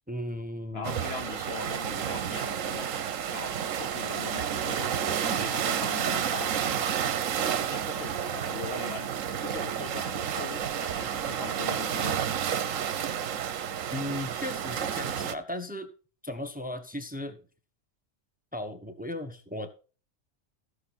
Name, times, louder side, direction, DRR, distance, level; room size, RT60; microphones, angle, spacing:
voice 1, 0.1-1.0 13.9-15.9 16.2-17.4 18.5-19.7, left 1 dB, 5° right, 1.0 m, -36 dB
voice 2, 0.7-2.9 3.3-6.7 7.7-9.2 9.4-12.2, left 6 dB, 55° left, 1.1 m, -41 dB
sound 1, 0.8-15.4, right 8 dB, 75° right, 1.2 m, -30 dB
15.5 x 6.4 x 4.2 m
omnidirectional pair, 1.4 m